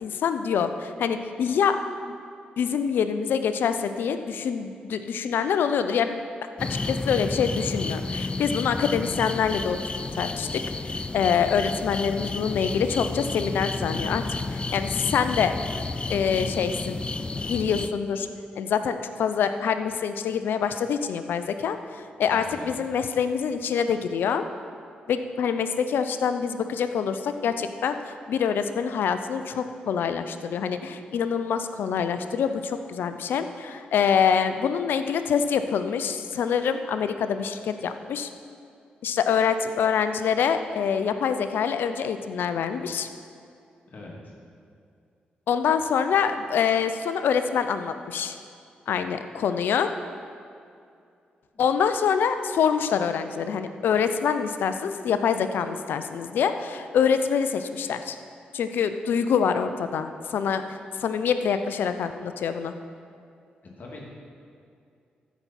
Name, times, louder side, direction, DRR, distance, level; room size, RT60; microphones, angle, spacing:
voice 1, 0.0-1.8 2.6-6.2 6.9-9.8 10.2-10.6 11.1-14.2 14.5-15.5 16.1-17.0 17.4-18.3 18.6-24.4 25.1-38.3 39.0-43.1 45.5-48.3 48.9-49.9 51.6-58.2 58.5-62.7, left 7 dB, 75° left, 9 dB, 0.5 m, -25 dB
sound 1, 6.6-17.9, left 3 dB, 30° left, 0.5 m, -31 dB
voice 2, 22.3-22.7 43.9-44.3 51.5-51.6 63.8-64.0, left 2 dB, 55° left, -3 dB, 2.2 m, -42 dB
14.5 x 6.0 x 4.2 m, 2.4 s
supercardioid pair, 50°, 3 cm